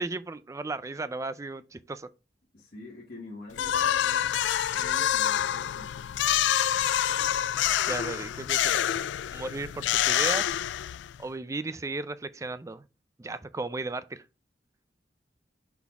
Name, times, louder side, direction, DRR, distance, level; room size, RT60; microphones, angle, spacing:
voice 1, 0.0-2.1 7.9-9.0 9.3-10.6 11.2-12.8 13.2-14.2, right 3 dB, 20° right, 0.4 m, -35 dB
voice 2, 2.5-4.5 4.7-6.2, left 2 dB, 55° left, 1.4 m, -46 dB
sound 1, 3.6-11.2, left 11 dB, 80° left, 0.3 m, -27 dB
5.8 x 4.1 x 4.6 m
head